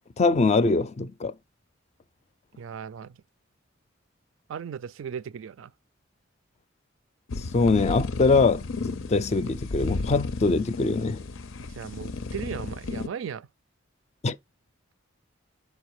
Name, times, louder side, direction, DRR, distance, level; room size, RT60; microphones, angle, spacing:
voice 1, 0.2-1.3 7.4-11.2 14.2-14.4, left 3 dB, 35° left, 0.4 m, -23 dB
voice 2, 2.6-3.2 4.5-5.7 11.7-13.5, right 7 dB, 70° right, 0.4 m, -37 dB
sound 1, 7.3-13.1, left 3 dB, 80° left, 0.6 m, -33 dB
5.5 x 5.0 x 4.6 m
head